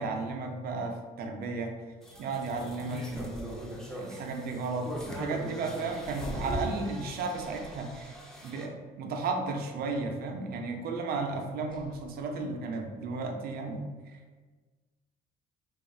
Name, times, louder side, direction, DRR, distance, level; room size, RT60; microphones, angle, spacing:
voice 1, 0.0-1.7 2.2-8.1 8.4-14.2, right 3 dB, 65° right, 3 dB, 0.6 m, -34 dB
sound 1, 2.0-8.7, right 1 dB, 5° left, 0.5 m, -40 dB
sound 2, 3.1-3.8 6.1-7.7 11.6-12.6, left 1 dB, 30° left, 0.9 m, -44 dB
3.1 x 2.4 x 4.1 m, 1.4 s
cardioid pair, 110°, 17 cm